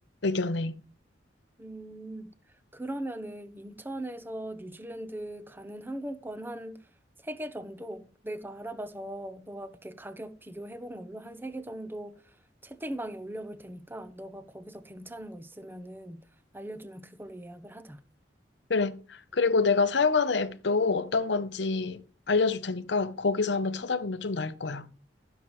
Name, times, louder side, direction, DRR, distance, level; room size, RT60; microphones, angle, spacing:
voice 1, 0.2-0.8 18.7-22.0 22.3-24.9, left 4 dB, 70° left, 0.8 m, -27 dB
voice 2, 1.6-6.9 7.2-12.4 12.6-16.2 16.5-18.0, right 1 dB, 10° right, 0.9 m, -40 dB
15.5 x 7.2 x 3.2 m
head